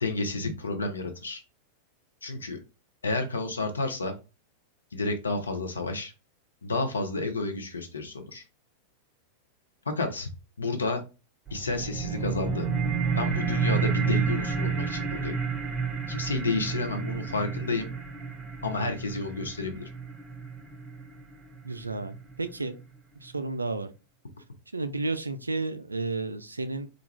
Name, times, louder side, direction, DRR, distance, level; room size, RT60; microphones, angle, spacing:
voice 1, 0.0-1.4 2.2-2.6 3.0-4.1 4.9-6.1 6.6-8.4 10.0-10.3 10.6-11.0 11.5-12.7 13.2-15.4 16.1-17.9 18.6-19.9, left 3 dB, 75° left, 0.6 m, -30 dB
sound 1, 11.5-22.5, right 5 dB, 20° right, 0.6 m, -31 dB
voice 2, 21.6-22.8 23.2-23.9 24.7-26.9, right 3 dB, 80° right, 0.3 m, -32 dB
2.5 x 2.3 x 3.1 m
figure-of-eight pair, 90°, 0 cm